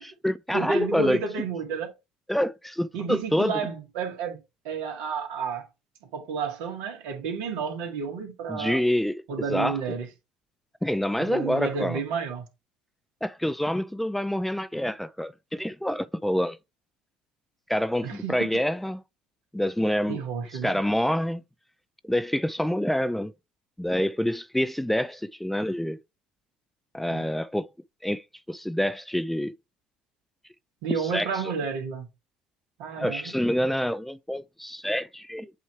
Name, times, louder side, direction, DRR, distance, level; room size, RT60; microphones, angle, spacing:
voice 1, 0.0-1.2 2.3-3.6 8.5-9.8 10.8-12.0 13.2-16.6 17.7-19.0 19.5-20.2 20.5-21.4 22.0-23.3 23.8-26.0 26.9-27.7 28.0-29.5 30.9-31.5 33.0-35.5, equal, 5° left, 0.4 m, -27 dB
voice 2, 0.5-1.9 2.9-4.4 4.6-5.7 6.1-8.8 9.3-10.1 11.2-12.4 18.0-18.5 20.1-20.8 27.1-27.3 30.8-32.0 32.8-33.3, right 5 dB, 70° right, 2.2 m, -31 dB
8.1 x 3.1 x 4.5 m
hypercardioid pair, 60°, 3 cm